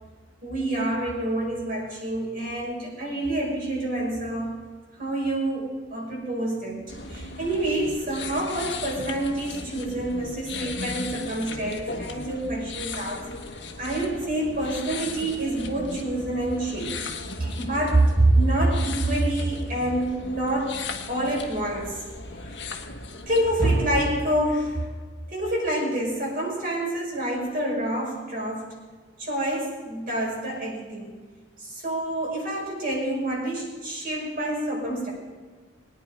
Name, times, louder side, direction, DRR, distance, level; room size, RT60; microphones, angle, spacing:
voice 1, 0.4-4.6 5.0-13.3 13.8-20.8 21.1-22.0 23.3-24.9 25.3-28.7 29.2-31.2 31.6-35.1, right 1 dB, 50° right, -3 dB, 5.6 m, -27 dB
sound 1, 6.9-23.5, left 3 dB, 70° left, 1.4 m, -37 dB
22.0 x 9.6 x 5.1 m, 1.4 s
head